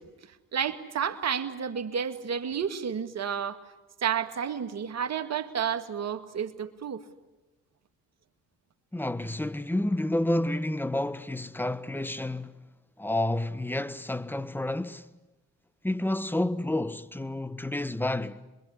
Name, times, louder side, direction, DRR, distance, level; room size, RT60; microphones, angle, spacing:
voice 1, 0.0-3.6 4.0-7.0, right 7 dB, 55° right, 2.2 m, -31 dB
voice 2, 8.9-12.6 13.0-15.1 15.8-18.4, left 1 dB, 5° left, 1.3 m, -30 dB
27.0 x 22.0 x 9.7 m
supercardioid pair, 60°, 31 cm